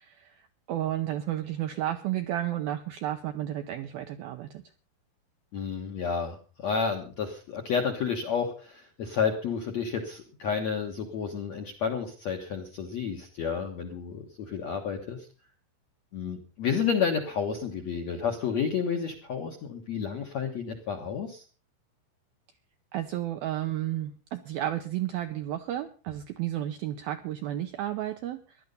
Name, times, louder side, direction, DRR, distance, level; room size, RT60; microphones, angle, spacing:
voice 1, 0.0-4.6 22.9-28.4, right 12 dB, 80° right, 7 dB, 2.1 m, -32 dB
voice 2, 5.5-15.3 16.1-21.4, left 6 dB, 65° left, 3 dB, 1.7 m, -31 dB
17.0 x 12.0 x 5.3 m, 0.37 s
omnidirectional pair, 5.4 m